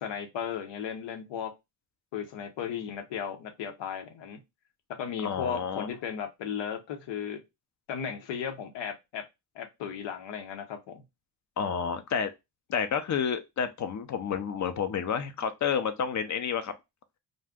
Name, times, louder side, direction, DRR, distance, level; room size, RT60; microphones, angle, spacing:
voice 1, 0.0-1.5 2.1-4.4 5.0-7.4 7.9-9.2 9.5-11.0, left 7 dB, 80° left, 0.8 m, -35 dB
voice 2, 5.2-5.9 11.6-12.3 12.7-16.7, left 7 dB, 40° left, 0.6 m, -30 dB
2.5 x 2.2 x 3.5 m
cardioid pair, 80°, 44 cm